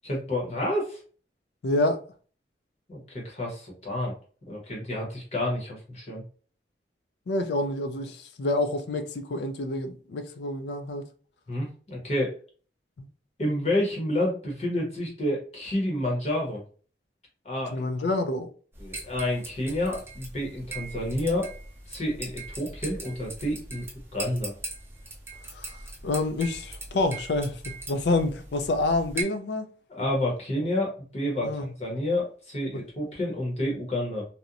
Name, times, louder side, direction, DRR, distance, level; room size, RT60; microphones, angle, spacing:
voice 1, 0.0-1.0 2.9-4.1 4.5-6.2 11.5-12.3 13.4-16.6 17.4-17.9 18.8-21.5 21.9-23.8 24.1-24.6 29.9-34.3, left 1 dB, 35° left, 0.8 m, -29 dB
voice 2, 1.6-2.0 7.3-11.0 13.0-13.1 17.7-18.5 25.6-25.7 26.0-29.7 31.4-31.7, left 2 dB, 75° left, 0.4 m, -28 dB
sound 1, 18.7-29.2, right 3 dB, 15° right, 0.5 m, -40 dB
2.8 x 2.1 x 2.4 m
head